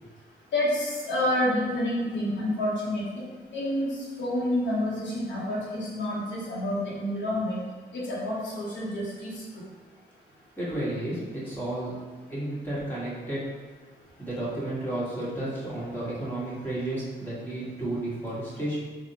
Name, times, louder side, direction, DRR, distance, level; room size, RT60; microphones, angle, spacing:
voice 1, 0.5-3.2 3.5-3.9 4.2-7.6 7.9-9.3, left 1 dB, 80° left, -6 dB, 0.8 m, -28 dB
voice 2, 10.6-11.9 12.3-13.4 14.2-18.8, right 1 dB, 10° left, -9 dB, 1.3 m, -32 dB
3.4 x 2.1 x 2.7 m, 1.4 s
cardioid pair, 85°, 19 cm